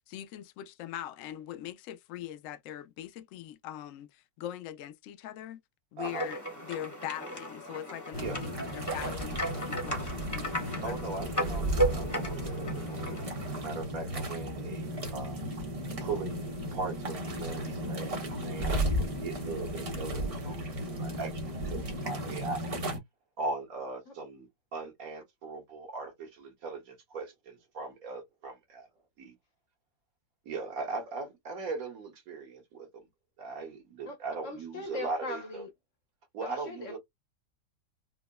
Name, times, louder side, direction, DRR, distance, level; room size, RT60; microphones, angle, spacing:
voice 1, 0.1-5.6 5.9-11.3, left 12 dB, 75° left, 0.7 m, -42 dB
sound 1, 6.0-13.5, right 1 dB, 10° left, 1.0 m, -35 dB
voice 2, 6.0-6.3 8.2-8.4 10.8-15.4 15.7-21.3 21.6-22.6 23.4-28.9 29.3-29.4 30.5-33.0 33.4-35.7 36.3-37.0, right 4 dB, 55° right, 1.7 m, -39 dB
sound 2, 8.1-23.0, equal, 35° right, 0.6 m, -34 dB
voice 3, 34.4-35.7 36.4-37.0, left 3 dB, 50° left, 1.1 m, -40 dB
4.9 x 2.1 x 2.2 m
omnidirectional pair, 2.0 m